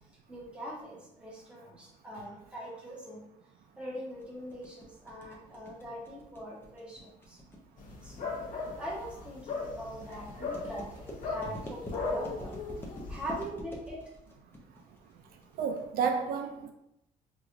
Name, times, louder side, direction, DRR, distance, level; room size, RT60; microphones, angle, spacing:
voice 1, 0.3-3.2 3.8-7.4 8.0-8.4 8.8-12.6 13.1-14.0, equal, 5° right, -5 dB, 1.0 m, -42 dB
sound 1, 4.2-16.2, left 1 dB, 15° left, 0.5 m, -47 dB
sound 2, 7.8-13.4, left 3 dB, 60° left, 0.8 m, -38 dB
voice 2, 10.1-10.5 15.5-16.7, right 6 dB, 75° right, 4 dB, 0.4 m, -32 dB
4.7 x 2.4 x 2.5 m, 0.83 s
cardioid pair, 165°, 15 cm